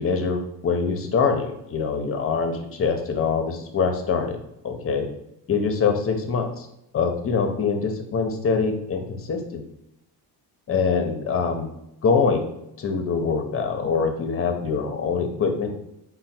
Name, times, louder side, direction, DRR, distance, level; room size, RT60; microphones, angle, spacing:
voice 1, 0.0-4.4 4.6-5.1 5.5-6.7 6.9-9.6 10.7-11.7 12.0-12.5 12.8-15.7, left 5 dB, 30° left, 5 dB, 0.6 m, -24 dB
4.3 x 2.2 x 4.2 m, 0.83 s
cardioid pair, 125°, 43 cm